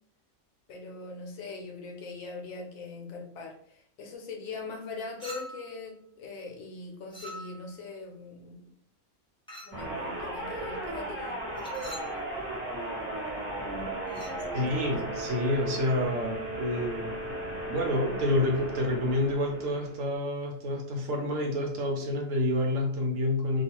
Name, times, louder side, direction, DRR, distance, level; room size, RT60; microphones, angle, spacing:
voice 1, 0.7-8.6 9.6-11.5 13.7-14.5, left 3 dB, 75° left, 2 dB, 1.0 m, -42 dB
Chink clink, 5.2-5.8 7.1-7.8 9.5-9.8 11.5-12.2 14.1-14.4, equal, 5° left, 0.4 m, -44 dB
sound 1, 9.7-20.1, right 1 dB, 40° right, 0.9 m, -36 dB
voice 2, 14.5-23.6, left 1 dB, 70° right, 2 dB, 1.0 m, -29 dB
2.4 x 2.3 x 2.9 m, 0.66 s
omnidirectional pair, 1.4 m